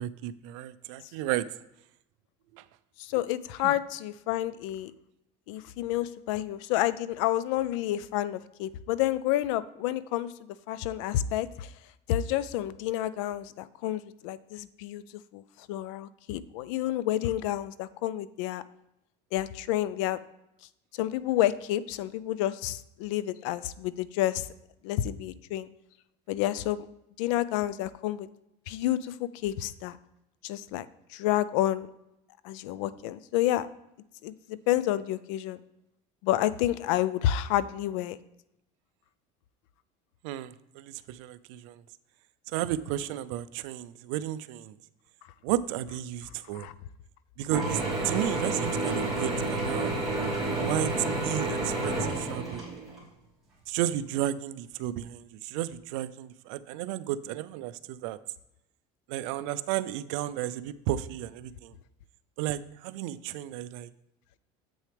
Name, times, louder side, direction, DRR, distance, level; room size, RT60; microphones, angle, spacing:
voice 1, 0.0-1.4 2.5-2.6 3.6-3.7 40.2-41.8 42.5-44.8 45.4-46.7 47.4-49.9 50.5-52.6 53.7-58.2 59.1-61.7 62.4-63.9, right 13 dB, 80° right, 15 dB, 0.4 m, -33 dB
voice 2, 3.0-4.9 5.5-10.3 10.7-11.7 12.1-15.0 15.3-18.6 19.3-20.2 20.9-24.5 24.8-25.7 26.3-26.9 27.2-28.3 28.7-30.0 30.4-31.9 32.4-33.7 34.2-35.6 36.2-38.2 46.5-46.7, left 13 dB, 85° left, 17 dB, 0.4 m, -29 dB
Mechanisms / Drill, 47.5-53.0, right 2 dB, ahead, 2.6 m, -30 dB
7.8 x 6.2 x 3.3 m, 0.86 s
cardioid pair, 155°, 16 cm